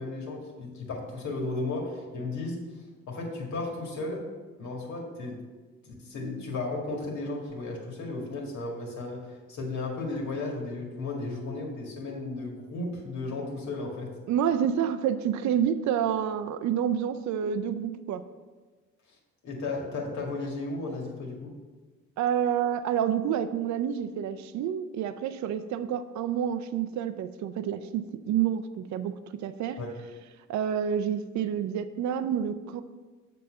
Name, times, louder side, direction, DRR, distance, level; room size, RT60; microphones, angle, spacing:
voice 1, 0.0-2.6 3.1-4.2 4.6-5.4 5.8-14.1 19.4-21.5 29.8-29.9, left 2 dB, 70° left, -1 dB, 1.9 m, -34 dB
voice 2, 14.3-18.2 22.2-29.8 30.5-32.8, right 9 dB, 70° right, 11 dB, 0.5 m, -28 dB
6.8 x 4.1 x 6.3 m, 1.3 s
cardioid pair, 90°, 30 cm